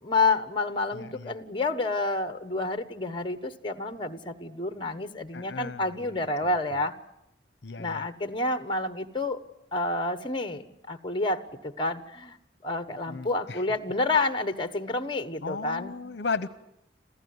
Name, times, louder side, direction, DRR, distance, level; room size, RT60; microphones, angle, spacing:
voice 1, 0.0-6.9 7.8-9.4 9.7-12.3 12.6-16.0, left 2 dB, 25° left, 10 dB, 1.2 m, -29 dB
voice 2, 0.9-1.3 5.3-5.9 7.6-8.1 13.1-13.6 15.4-16.5, left 4 dB, 65° left, 14 dB, 0.9 m, -35 dB
27.5 x 15.5 x 9.6 m, 0.84 s
head